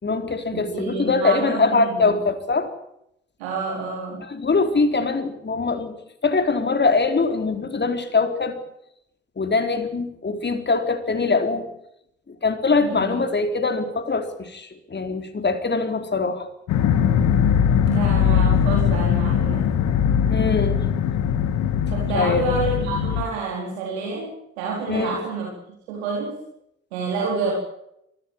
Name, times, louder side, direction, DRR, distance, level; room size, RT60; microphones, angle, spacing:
voice 1, 0.0-2.7 4.2-5.9 6.2-8.6 9.4-11.7 12.3-16.5 20.3-20.8 22.1-22.5 24.9-25.1, left 4 dB, 35° left, 7 dB, 4.2 m, -22 dB
voice 2, 0.5-2.2 3.4-4.2 12.8-13.2 17.9-19.6 21.9-25.5 25.9-26.4 26.9-27.5, right 4 dB, 80° right, -1 dB, 4.4 m, -28 dB
sound 1, 16.7-23.2, left 8 dB, 60° left, 2.0 m, -20 dB
23.5 x 16.0 x 9.1 m, 0.77 s
figure-of-eight pair, 40°, 32 cm